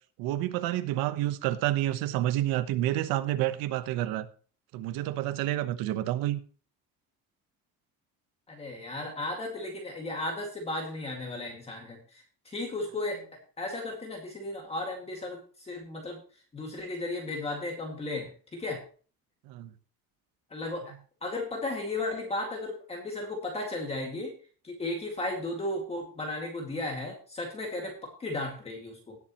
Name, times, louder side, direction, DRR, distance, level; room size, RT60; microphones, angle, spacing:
voice 1, 0.2-4.3 4.7-6.4 19.5-19.7, right 14 dB, 90° right, 1.1 m, -29 dB
voice 2, 8.5-16.2 16.5-18.8 20.5-20.8 21.2-24.3 24.6-29.2, left 2 dB, 15° left, 2.1 m, -35 dB
18.5 x 7.3 x 3.0 m
cardioid pair, 175°, 35 cm